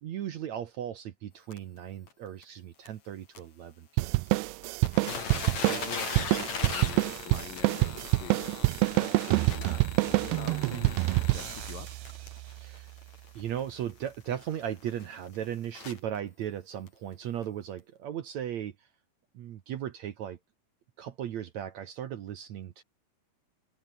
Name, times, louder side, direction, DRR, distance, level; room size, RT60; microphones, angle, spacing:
voice 1, 0.0-4.2 12.6-12.9 13.4-18.7 19.3-20.4 21.0-22.8, right 10 dB, 65° right, 1.8 m, -37 dB
sound 1, 1.5-1.6 2.1-2.2 2.4-2.5 2.9-3.0 3.3-3.4 4.3-4.4 4.6-16.2 16.9-17.0 17.4-17.5, left 5 dB, 40° left, 5.0 m, -39 dB
sound 2, 4.0-12.8, right 22 dB, 85° right, 2.6 m, -27 dB
voice 2, 5.7-8.6 8.9-11.9, left 12 dB, 70° left, 2.4 m, -45 dB
omnidirectional pair, 4.8 m